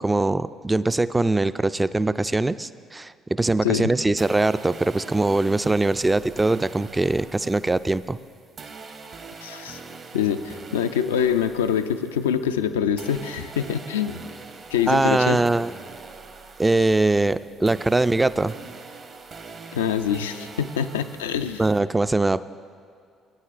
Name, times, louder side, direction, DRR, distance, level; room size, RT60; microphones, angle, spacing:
voice 1, 0.0-8.2 14.9-15.7 16.6-18.6 21.6-22.4, right 2 dB, 20° right, 14 dB, 0.3 m, -22 dB
voice 2, 3.6-3.9 9.4-9.8 10.1-14.2 14.7-15.4 19.7-21.6, left 8 dB, 85° left, 9 dB, 0.3 m, -25 dB
sound 1, 4.2-12.7 13.0-21.8, right 4 dB, 50° right, 1.0 m, -43 dB
20.0 x 9.7 x 2.5 m, 2.3 s
hypercardioid pair, 50°, 0 cm